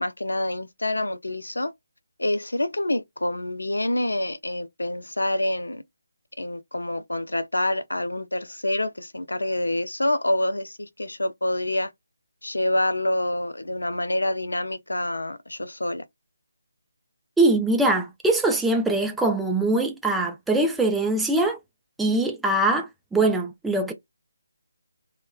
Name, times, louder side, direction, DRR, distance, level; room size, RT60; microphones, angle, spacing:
voice 1, 0.0-1.7 2.2-5.8 6.4-11.9 12.4-16.0, left 1 dB, 80° left, 0.4 m, -27 dB
voice 2, 17.4-21.6 22.0-23.9, right 2 dB, 5° right, 0.4 m, -22 dB
2.9 x 2.1 x 2.2 m
figure-of-eight pair, 150°, 0 cm